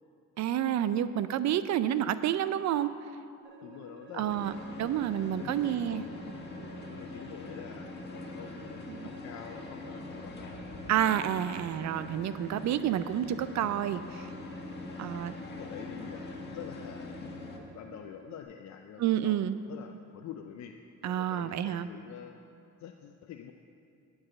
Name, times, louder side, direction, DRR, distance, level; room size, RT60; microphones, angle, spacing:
voice 1, 0.4-2.9 4.2-4.5 4.8-6.0 8.9-9.1 10.9-14.3 15.0-15.3 19.0-19.6 21.0-21.9, right 11 dB, 65° right, 13 dB, 0.5 m, -29 dB
sound 1, 3.4-18.4, right 3 dB, 40° right, 1.3 m, -51 dB
voice 2, 3.6-4.6 5.0-6.1 6.9-10.7 14.9-15.3 15.5-17.2 17.6-20.8 21.0-22.4 22.8-23.5, left 9 dB, 65° left, 4 dB, 0.5 m, -47 dB
sound 2, 4.3-17.6, left 3 dB, 35° left, 1.4 m, -43 dB
10.0 x 4.8 x 7.4 m, 2.5 s
cardioid pair, 90°, 30 cm